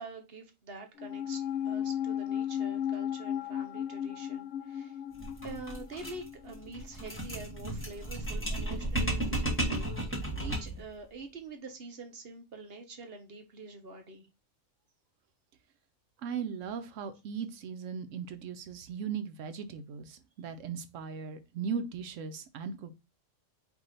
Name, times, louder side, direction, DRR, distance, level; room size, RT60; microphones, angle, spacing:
voice 1, 0.0-5.0 5.4-9.9 10.4-14.3, right 3 dB, 50° right, 1.0 m, -46 dB
sound 1, 1.0-7.6 7.8-7.9, left 10 dB, 65° left, 0.9 m, -36 dB
sound 2, 5.1-10.9, right 1 dB, 10° left, 1.2 m, -34 dB
voice 2, 16.2-23.0, right 6 dB, 75° right, 0.9 m, -38 dB
4.7 x 2.7 x 3.8 m
omnidirectional pair, 1.4 m